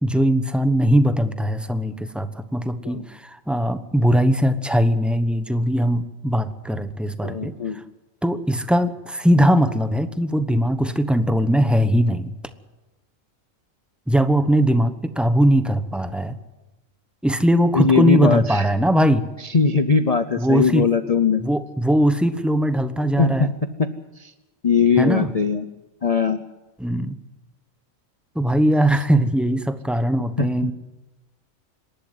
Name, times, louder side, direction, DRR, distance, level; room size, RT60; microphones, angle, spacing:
voice 1, 0.0-7.8 8.2-12.3 14.1-16.4 17.2-19.3 20.4-20.9 21.4-23.5 25.0-25.3 26.8-27.2 28.3-30.7, equal, ahead, 11 dB, 0.8 m, -20 dB
voice 2, 7.2-7.8 17.7-18.7 19.5-21.4 23.2-23.5 24.2-24.3 24.6-25.6 26.0-26.4 30.4-30.5, left 5 dB, 35° left, 10 dB, 0.7 m, -20 dB
26.0 x 11.5 x 9.5 m, 1.1 s
omnidirectional pair, 1.4 m